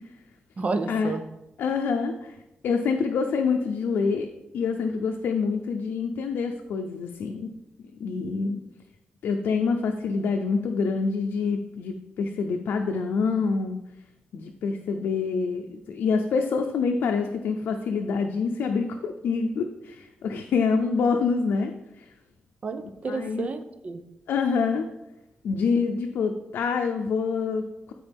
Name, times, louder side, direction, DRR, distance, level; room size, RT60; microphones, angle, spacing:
voice 1, 0.6-1.2 22.6-24.0, right 3 dB, 40° right, 9 dB, 0.7 m, -30 dB
voice 2, 1.6-4.3 4.5-7.5 8.0-8.6 9.2-13.8 14.3-22.1 23.1-23.5 24.3-24.9 25.4-27.9, left 5 dB, 85° left, 4 dB, 0.6 m, -26 dB
13.0 x 4.5 x 3.5 m, 0.93 s
wide cardioid pair, 120°, 4 cm